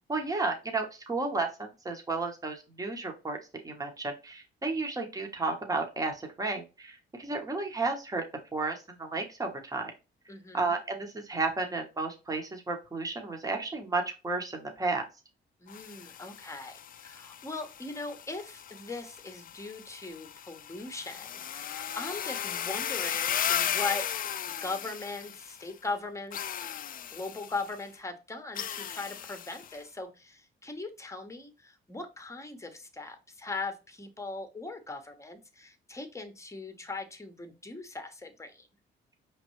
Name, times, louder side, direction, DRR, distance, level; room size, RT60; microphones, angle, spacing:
voice 1, 0.1-3.4 3.6-8.2 8.5-9.9 10.5-15.0, right 3 dB, 15° right, 3 dB, 1.2 m, -32 dB
voice 2, 10.3-10.8 15.6-24.1 24.6-26.6 27.1-38.7, left 3 dB, 15° left, 7 dB, 1.1 m, -39 dB
sound 1, 15.7-25.7 26.3-27.7 28.6-29.8, left 9 dB, 45° left, 0.4 m, -36 dB
5.0 x 3.2 x 3.1 m, 0.28 s
cardioid pair, 90°, 20 cm